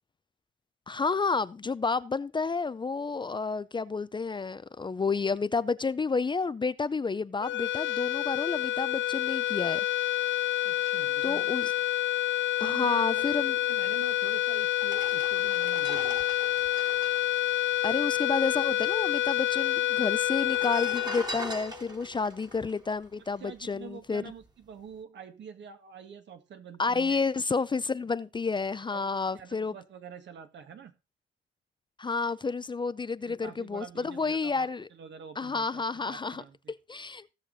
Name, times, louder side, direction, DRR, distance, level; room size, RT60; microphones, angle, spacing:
voice 1, 0.9-9.9 11.2-11.7 12.6-13.6 17.8-24.2 26.8-29.7 32.0-34.9 35.4-36.4 36.9-37.3, left 4 dB, 25° left, 0.5 m, -30 dB
sound 1, 7.4-22.0, left 13 dB, 70° left, 0.6 m, -28 dB
voice 2, 10.6-11.6 12.6-13.3 13.6-16.3 23.4-27.2 28.9-30.9 33.3-36.7, right 7 dB, 65° right, 1.8 m, -46 dB
sound 2, 14.1-14.2 14.7-18.4 18.7-18.8 19.0-19.7 20.3-23.8 24.3-24.5, right 2 dB, 20° right, 1.8 m, -42 dB
16.5 x 6.6 x 4.1 m
cardioid pair, 90°, 20 cm